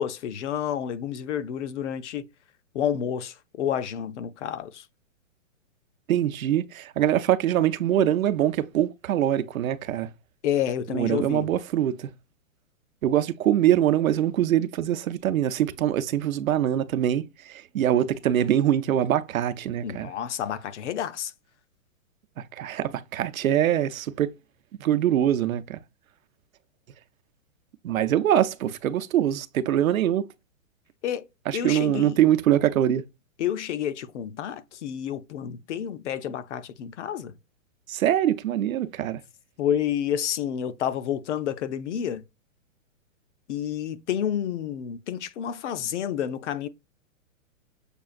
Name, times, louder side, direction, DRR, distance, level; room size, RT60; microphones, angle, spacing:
voice 1, 0.0-2.3 2.7-4.9 10.4-11.5 19.8-21.3 31.0-32.2 33.4-37.3 39.6-42.2 43.5-46.7, left 9 dB, 60° left, 0.6 m, -29 dB
voice 2, 6.1-10.1 10.9-12.1 13.0-20.1 22.4-24.3 24.8-25.8 27.8-30.3 31.5-33.0 37.9-39.2, right 11 dB, 90° right, 0.7 m, -23 dB
6.7 x 2.4 x 2.5 m
hypercardioid pair, 155°, 40 cm